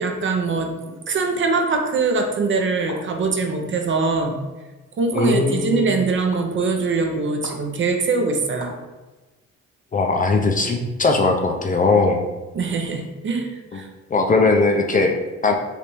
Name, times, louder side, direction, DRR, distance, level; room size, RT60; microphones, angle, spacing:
voice 1, 0.0-4.4 5.0-8.7 12.5-13.9, right 4 dB, 40° right, 3 dB, 0.5 m, -22 dB
sound 1, 1.7-1.8 2.9-3.0 4.0-4.1 5.2-5.3 6.3-6.4 7.4-7.5 8.6-8.8, left 2 dB, 75° left, 0.9 m, -35 dB
voice 2, 5.1-6.0 9.9-12.2 13.7-13.8 14.1-15.5, left 3 dB, 30° left, 2 dB, 0.4 m, -19 dB
3.3 x 2.6 x 3.0 m, 1.2 s
cardioid pair, 90°, 30 cm